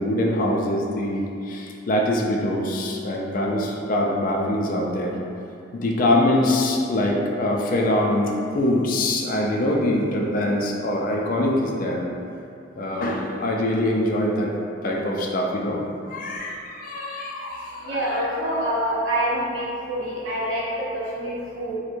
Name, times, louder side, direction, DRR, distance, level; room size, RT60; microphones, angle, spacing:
voice 1, 0.0-5.2 5.7-12.0 12.8-14.5 14.8-15.8 16.1-18.3, left 1 dB, 45° left, 0 dB, 0.3 m, -24 dB
voice 2, 17.8-21.8, equal, 80° right, -7 dB, 0.8 m, -26 dB
4.3 x 2.1 x 2.5 m, 2.6 s
head